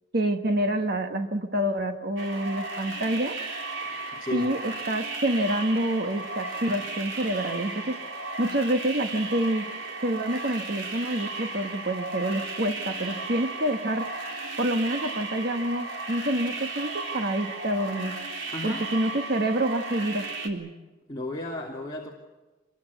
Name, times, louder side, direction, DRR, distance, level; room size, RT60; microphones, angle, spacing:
voice 1, 0.1-3.4 4.3-8.0 8.4-9.7 10.0-14.1 14.6-18.2 18.6-20.7, right 1 dB, 50° right, 5 dB, 1.4 m, -27 dB
sound 1, 2.2-20.5, right 3 dB, 70° right, 3.8 m, -35 dB
voice 2, 4.1-4.5 18.5-18.9 21.1-22.1, left 2 dB, 20° left, -2 dB, 2.6 m, -34 dB
26.0 x 22.0 x 8.2 m, 1.2 s
head